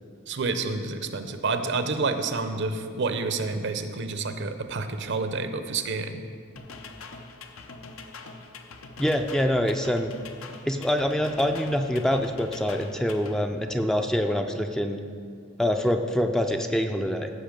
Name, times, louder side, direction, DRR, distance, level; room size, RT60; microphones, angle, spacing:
voice 1, 0.3-6.2, right 3 dB, 60° right, 9 dB, 0.7 m, -29 dB
sound 1, 6.6-13.4, left 4 dB, 75° left, 0.8 m, -43 dB
voice 2, 9.0-10.1 10.7-15.0 15.6-17.3, equal, ahead, 5 dB, 0.4 m, -25 dB
14.5 x 5.6 x 5.2 m, 2.2 s
head